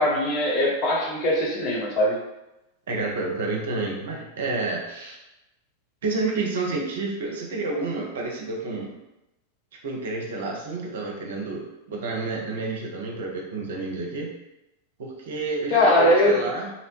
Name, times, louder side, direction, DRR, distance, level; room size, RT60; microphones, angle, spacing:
voice 1, 0.0-2.2 15.7-16.4, left 1 dB, 40° left, -3 dB, 0.8 m, -21 dB
voice 2, 2.9-5.2 6.0-8.9 9.8-14.3 15.0-16.7, right 3 dB, 60° right, -1 dB, 0.5 m, -29 dB
2.7 x 2.1 x 2.9 m, 0.94 s
figure-of-eight pair, 90°, 0 cm